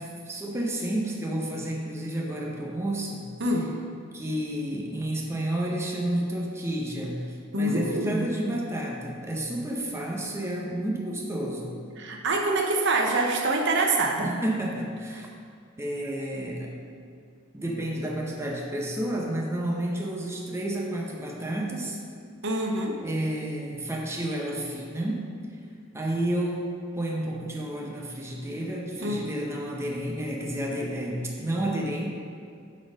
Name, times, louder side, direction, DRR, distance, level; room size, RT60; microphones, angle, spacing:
voice 1, 0.0-3.3 4.1-11.7 14.2-15.3 15.8-16.8 17.5-22.0 23.0-25.3 25.9-32.1, right 1 dB, 15° right, -1 dB, 0.7 m, -31 dB
voice 2, 3.4-3.7 7.5-8.3 12.0-14.3 22.4-23.0 29.0-29.3, right 2 dB, 60° right, 1 dB, 0.8 m, -25 dB
8.3 x 4.2 x 5.2 m, 2.2 s
head